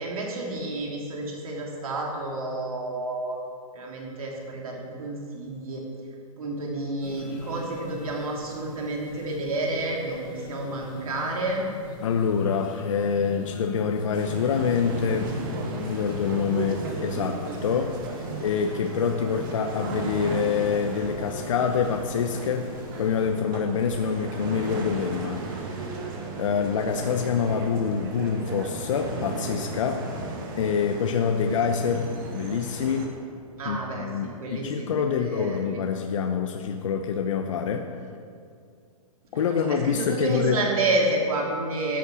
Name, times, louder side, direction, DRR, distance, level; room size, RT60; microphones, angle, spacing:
voice 1, 0.0-3.4 3.7-5.8 6.4-11.6 33.6-35.8 39.3-42.0, right 2 dB, 75° right, -1 dB, 3.5 m, -30 dB
sound 1, 7.0-23.3, left 5 dB, 35° left, 1.5 m, -42 dB
voice 2, 12.0-15.3 15.7-18.0 18.4-22.7 23.0-25.9 26.4-30.0 30.6-33.1 33.7-37.9 39.3-40.6, left 6 dB, 60° left, 4 dB, 0.9 m, -26 dB
sound 2, 14.1-33.1, right 3 dB, 35° right, 1.7 m, -35 dB
14.0 x 8.6 x 6.3 m, 2.3 s
hypercardioid pair, 170°, 18 cm